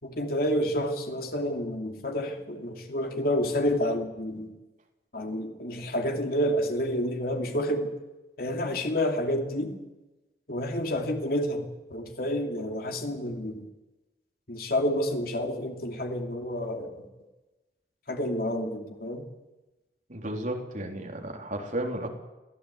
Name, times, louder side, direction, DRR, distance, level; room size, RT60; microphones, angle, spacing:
voice 1, 0.0-4.5 5.1-7.9 8.4-9.8 10.5-13.7 14.5-17.0 18.1-19.3, equal, 55° left, 3 dB, 2.9 m, -29 dB
voice 2, 20.1-22.1, right 1 dB, 45° right, 2 dB, 3.6 m, -33 dB
22.5 x 16.5 x 8.3 m, 1.1 s
head